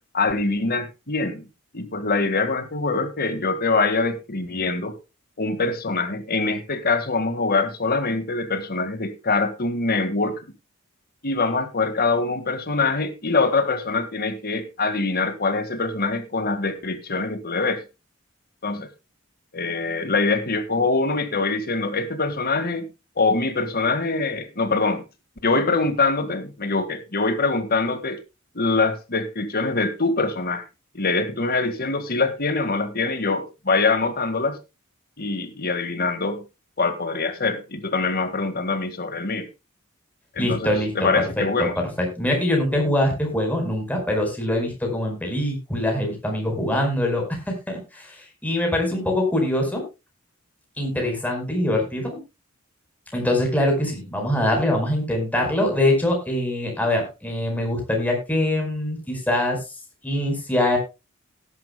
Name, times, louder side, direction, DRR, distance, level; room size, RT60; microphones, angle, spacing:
voice 1, 0.1-1.5 1.7-5.0 5.4-10.4 11.2-17.8 18.6-18.9 19.5-22.9 23.2-25.0 25.4-28.2 28.6-30.6 30.9-34.6 35.2-36.4 36.8-39.5 40.4-40.7 41.0-41.7, left 3 dB, 45° left, 1.8 m, -24 dB
voice 2, 40.4-41.1 41.4-41.7 42.0-47.2 47.7-48.1 48.4-49.8 50.8-52.2 53.1-59.6 60.0-60.8, left 1 dB, 10° left, 4.6 m, -23 dB
18.0 x 11.0 x 2.2 m
head